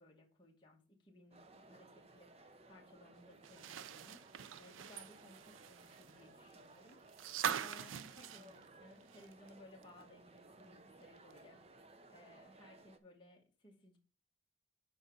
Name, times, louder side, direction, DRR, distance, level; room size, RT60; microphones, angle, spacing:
voice 1, 0.0-14.0, left 1 dB, 25° left, -1 dB, 1.3 m, -61 dB
sound 1, 1.3-13.0, right 2 dB, 30° right, 0.6 m, -60 dB
sound 2, 3.4-9.5 9.8-9.9 11.3-11.4, right 8 dB, 85° right, 0.4 m, -43 dB
6.5 x 5.1 x 4.8 m, 0.36 s
head